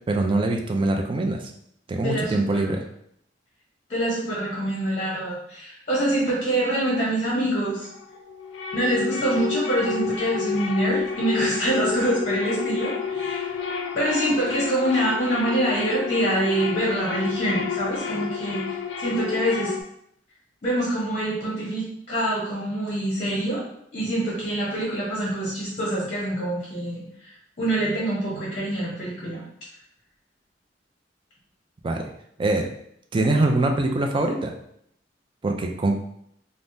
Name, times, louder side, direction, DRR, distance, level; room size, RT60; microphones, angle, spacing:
voice 1, 0.1-1.4 1.9-2.8 31.8-32.0 32.4-32.7 33.1-34.5 35.4-36.0, right 2 dB, 30° right, 3 dB, 0.3 m, -23 dB
voice 2, 2.0-2.8 3.9-7.9 8.7-13.6 13.9-19.8 20.6-23.6 23.9-29.4, right 1 dB, 40° left, -6 dB, 0.9 m, -25 dB
sound 1, 7.8-19.8, left 6 dB, 75° left, 0.4 m, -30 dB
3.4 x 2.0 x 2.6 m, 0.72 s
head